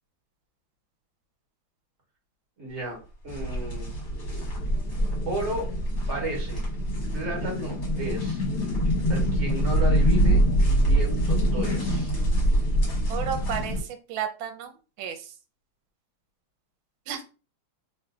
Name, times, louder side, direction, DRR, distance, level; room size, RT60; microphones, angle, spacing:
voice 1, 2.6-3.0 3.2-3.9 5.3-5.7 6.1-6.6 7.1-8.4 9.1-10.4 10.8-12.1, right 1 dB, 40° right, -1 dB, 1.2 m, -33 dB
sound 1, 3.3-13.8, equal, 50° left, 1.6 m, -24 dB
voice 2, 13.1-14.7 15.0-15.3 17.1-17.2, right 8 dB, 80° right, 6 dB, 1.4 m, -32 dB
3.3 x 2.6 x 2.3 m, 0.34 s
omnidirectional pair, 2.2 m